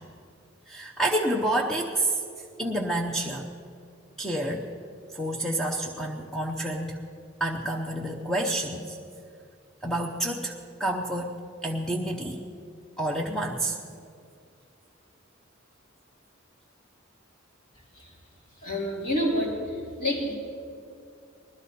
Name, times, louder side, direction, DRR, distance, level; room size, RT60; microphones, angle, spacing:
voice 1, 0.7-2.2 2.6-3.5 4.2-4.7 5.1-7.1 7.4-9.0 9.8-11.3 11.6-12.4 13.0-13.8, right 1 dB, ahead, 0 dB, 0.7 m, -29 dB
voice 2, 18.6-20.3, left 1 dB, 45° left, -7 dB, 4.7 m, -28 dB
20.0 x 13.0 x 4.2 m, 2.4 s
head